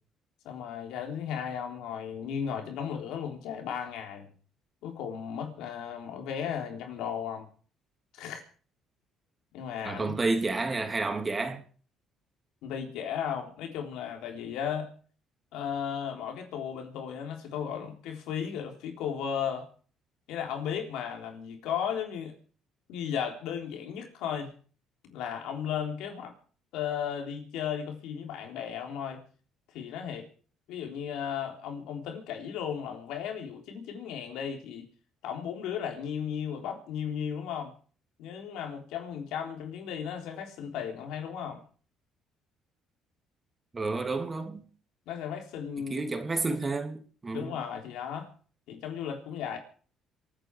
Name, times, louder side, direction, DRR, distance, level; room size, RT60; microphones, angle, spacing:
voice 1, 0.4-4.3 4.8-7.5 8.1-8.4 9.5-10.2 12.6-14.9 15.5-19.7 20.3-22.3 22.9-24.5 25.0-26.4 26.7-29.2 29.7-30.3 30.7-34.9 35.2-37.7 38.2-41.6 45.1-46.1 47.3-48.3 48.7-49.6, left 8 dB, 80° left, 3.7 m, -35 dB
voice 2, 9.8-11.6 43.7-44.6 45.9-47.6, right 3 dB, 25° right, 3.0 m, -30 dB
27.5 x 9.3 x 4.8 m
cardioid pair, 95°, 0 cm